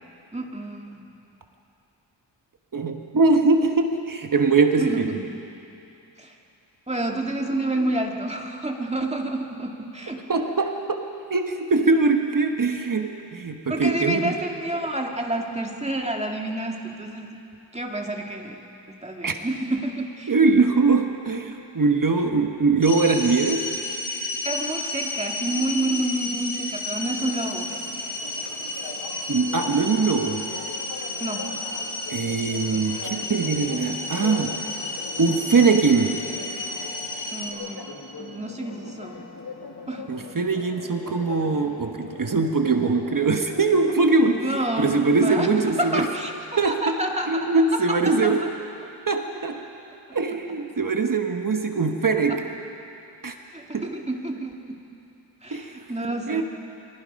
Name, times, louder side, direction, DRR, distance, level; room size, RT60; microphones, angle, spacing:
voice 1, 0.3-1.0 4.8-5.2 6.2-6.3 6.9-10.2 13.7-17.4 17.7-18.6 19.0-20.3 24.4-27.7 31.2-31.4 37.3-37.8 38.2-39.2 39.9-40.1 44.4-45.5 45.8-46.3 46.6-47.5 47.7-47.8 48.2-48.3 53.5-54.8 55.4-56.4, right 1 dB, 15° right, 1 dB, 2.1 m, -29 dB
voice 2, 2.7-5.2 10.3-11.0 11.3-14.4 19.2-19.4 20.3-23.7 29.3-30.4 32.1-34.6 35.2-36.2 40.1-46.1 46.6-46.9 47.3-48.5 49.1-49.6 50.1-52.5 53.2-53.3 53.7-53.9 55.5-55.8 56.1-56.4, right 4 dB, 45° right, 4 dB, 1.3 m, -22 dB
sound 1, 22.8-37.5, left 2 dB, 25° left, 4.1 m, -32 dB
Church bell, 27.2-45.5, left 4 dB, 55° left, 2.3 m, -41 dB
28.5 x 23.0 x 5.4 m, 2.8 s
wide cardioid pair, 125°, 46 cm